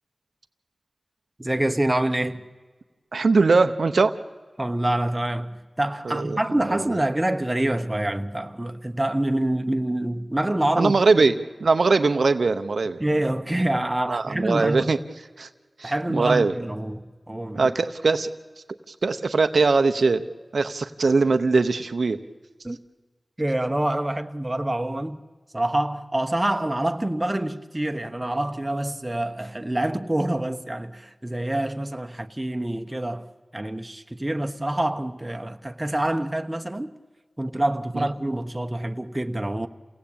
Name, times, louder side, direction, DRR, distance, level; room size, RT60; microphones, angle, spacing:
voice 1, 1.4-2.4 4.6-11.0 13.0-14.9 15.8-17.0 17.3-17.7 22.6-22.8 23.4-25.2 25.5-33.3 33.5-36.9 37.4-39.7, right 1 dB, 20° right, 1.2 m, -26 dB
voice 2, 3.1-4.1 6.0-6.4 6.7-7.0 10.8-11.3 11.6-13.0 14.1-15.0 15.4-15.5 15.8-16.5 17.5-18.3 18.9-20.2 20.5-22.2 37.9-38.1, right 4 dB, 85° right, 0.8 m, -21 dB
28.5 x 18.0 x 8.7 m
wide cardioid pair, 55°, 0 cm